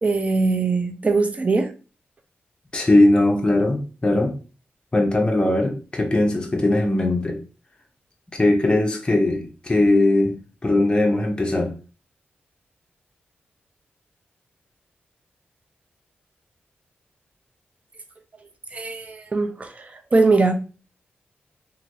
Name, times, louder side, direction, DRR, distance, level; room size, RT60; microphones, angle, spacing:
voice 1, 0.0-1.7 18.7-20.5, right 3 dB, 35° right, 0.5 m, -21 dB
voice 2, 2.7-4.3 4.9-7.4 8.4-10.4 10.6-11.7, left 2 dB, 25° left, 0.7 m, -19 dB
2.9 x 2.6 x 2.6 m
cardioid pair, 70°, 4 cm